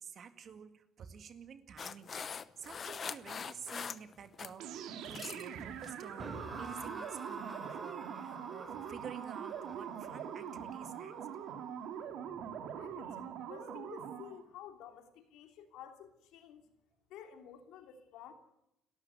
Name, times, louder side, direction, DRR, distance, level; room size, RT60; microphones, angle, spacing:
voice 1, 0.0-11.2, right 7 dB, 40° right, 9 dB, 2.1 m, -50 dB
sound 1, 1.8-4.6 4.9-5.5 5.8-6.1 6.7-6.9, left 6 dB, 30° left, 0.8 m, -43 dB
sound 2, 4.6-14.4, right 8 dB, 65° right, 2.9 m, -43 dB
sound 3, 6.2-13.3, right 2 dB, 15° right, 3.0 m, -50 dB
voice 2, 12.7-16.7 17.1-18.3, left 9 dB, 75° left, 6 dB, 3.2 m, -52 dB
30.0 x 13.0 x 9.6 m, 0.85 s
cardioid pair, 140°, 0 cm